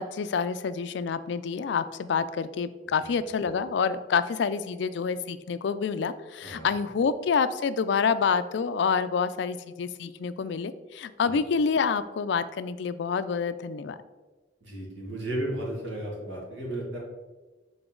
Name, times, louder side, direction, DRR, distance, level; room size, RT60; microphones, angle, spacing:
voice 1, 0.0-14.0, left 5 dB, 70° left, 13 dB, 0.3 m, -27 dB
voice 2, 14.6-17.0, right 1 dB, 80° right, -3 dB, 2.0 m, -34 dB
6.9 x 3.9 x 3.8 m, 1.2 s
head